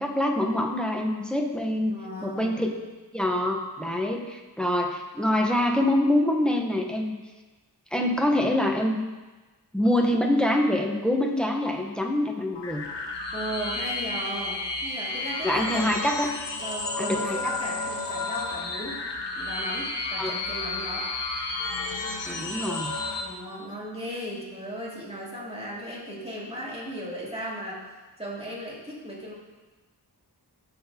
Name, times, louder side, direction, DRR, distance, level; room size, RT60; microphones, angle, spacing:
voice 1, 0.0-1.9 2.2-2.7 3.1-7.1 7.9-9.0 9.7-12.8 15.4-16.3 17.0-17.6 20.2-20.3 22.2-22.9, left 1 dB, ahead, 1 dB, 0.8 m, -25 dB
voice 2, 1.9-2.7 13.3-15.9 16.6-19.0 19.4-21.1 23.2-27.8 28.2-29.3, equal, 15° right, -7 dB, 2.2 m, -36 dB
sound 1, 12.5-23.2, left 3 dB, 80° left, 0.8 m, -32 dB
11.5 x 4.1 x 2.7 m, 1.2 s
wide cardioid pair, 45°, 42 cm